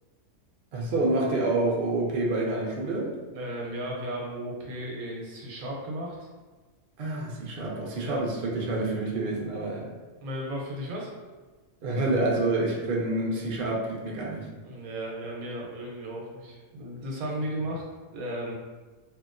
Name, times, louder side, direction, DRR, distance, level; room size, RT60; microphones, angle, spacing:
voice 1, 0.7-3.1 7.0-9.9 11.8-14.5, right 2 dB, 55° right, -3 dB, 0.6 m, -27 dB
voice 2, 3.3-6.3 8.0-8.2 10.2-11.1 13.1-13.2 14.6-17.8 18.1-18.5, equal, 85° right, -2 dB, 1.2 m, -35 dB
2.8 x 2.8 x 2.4 m, 1.3 s
omnidirectional pair, 1.4 m